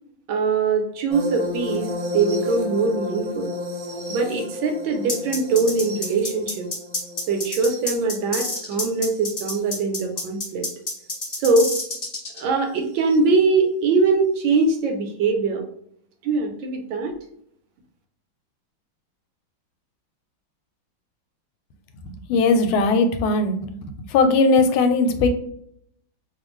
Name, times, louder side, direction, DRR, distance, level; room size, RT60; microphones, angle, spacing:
voice 1, 0.3-3.5 4.1-6.7 7.3-10.7 11.4-11.7 12.3-15.6 16.2-17.2, right 4 dB, 75° right, 4 dB, 1.3 m, -22 dB
sound 1, 1.1-9.8 11.1-11.4 13.1-13.2, left 1 dB, 60° right, 1.1 m, -32 dB
sound 2, 5.1-12.4, left 2 dB, 40° left, 0.5 m, -28 dB
voice 2, 22.0-23.7 24.1-25.3, left 3 dB, 90° left, 7 dB, 1.4 m, -19 dB
3.3 x 2.4 x 3.0 m, 0.68 s
omnidirectional pair, 2.2 m